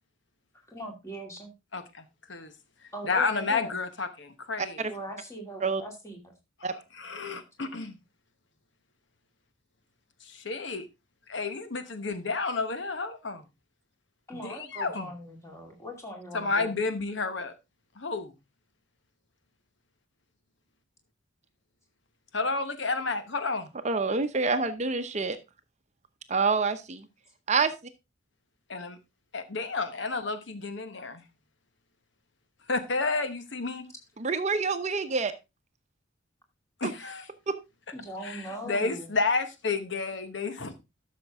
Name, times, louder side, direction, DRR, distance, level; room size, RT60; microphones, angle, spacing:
voice 1, 0.7-1.5 2.9-3.7 4.9-6.3 14.3-16.8 37.9-39.1, equal, 15° left, 2.6 m, -40 dB
voice 2, 1.7-2.0 2.3-2.5 3.1-4.9 6.7-8.0 10.2-10.9 11.3-13.4 14.3-15.1 16.3-17.5 18.0-18.3 22.3-23.7 28.7-29.0 29.3-31.2 32.7-33.9 36.8-37.3 38.2-40.7, left 4 dB, 65° left, 1.1 m, -31 dB
voice 3, 23.8-25.4 26.3-27.0 27.5-27.7 34.2-35.3 36.8-36.9, right 4 dB, 35° right, 0.8 m, -27 dB
12.5 x 6.6 x 3.5 m
head